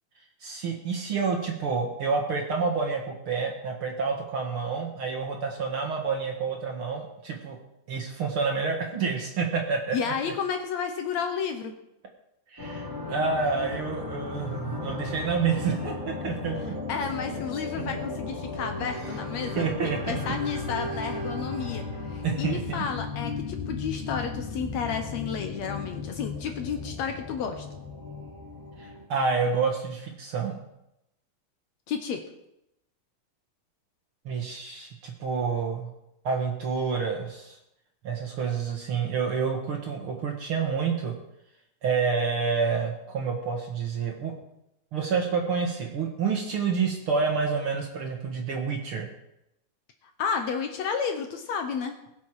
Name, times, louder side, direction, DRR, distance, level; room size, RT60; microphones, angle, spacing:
voice 1, 0.4-7.6 7.9-10.1 12.5-16.8 17.8-17.9 19.6-20.2 22.2-22.8 28.8-30.6 34.3-35.9 36.2-37.6 38.0-41.1 41.8-44.3 44.9-49.1, right 5 dB, 50° right, 2 dB, 1.9 m, -28 dB
voice 2, 9.9-11.7 16.9-21.8 22.1-27.7 31.9-32.2 50.2-52.0, left 6 dB, 70° left, 6 dB, 1.9 m, -31 dB
sound 1, 12.6-29.0, left 3 dB, 5° right, 2.4 m, -35 dB
21.0 x 7.5 x 4.8 m, 0.85 s
omnidirectional pair, 3.7 m